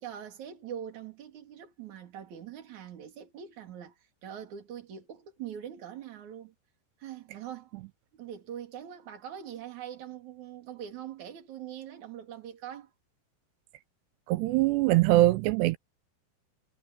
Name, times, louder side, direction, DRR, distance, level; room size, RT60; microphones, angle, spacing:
voice 1, 0.0-6.5 7.0-7.7 8.1-12.9, right 9 dB, 45° right, 3.9 m, -43 dB
voice 2, 14.3-15.8, right 17 dB, 80° right, 2.6 m, -22 dB
omnidirectional pair, 5.2 m